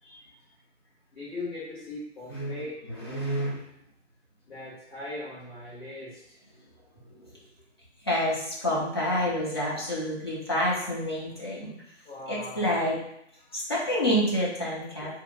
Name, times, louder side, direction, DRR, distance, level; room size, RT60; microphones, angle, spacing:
voice 1, 1.1-2.7 4.5-6.4 12.0-12.8 13.5-13.6, left 2 dB, 50° left, -10 dB, 1.4 m, -40 dB
voice 2, 2.3-3.6 7.0-7.4 8.0-11.7 12.3-13.0 13.5-15.2, equal, 20° left, -7 dB, 0.5 m, -28 dB
2.8 x 2.2 x 3.4 m, 0.75 s
figure-of-eight pair, 135°, 36 cm